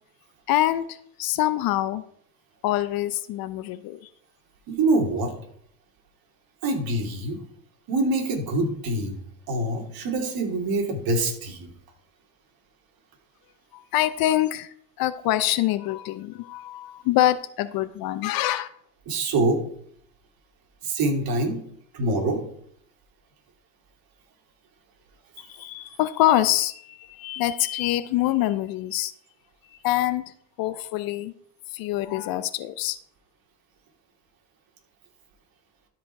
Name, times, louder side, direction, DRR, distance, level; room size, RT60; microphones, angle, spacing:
voice 1, 0.5-2.0 2.6-4.1 13.7-18.7 25.4-29.1 29.7-30.2 30.6-31.3 31.7-33.0, left 14 dB, 45° left, 14 dB, 0.6 m, -25 dB
voice 2, 4.7-5.3 6.6-7.4 7.9-9.2 9.5-11.7 19.1-19.6 20.8-21.6 21.9-22.4, right 2 dB, 45° right, 2 dB, 2.9 m, -25 dB
12.5 x 5.1 x 4.7 m, 0.66 s
hypercardioid pair, 95°, 50 cm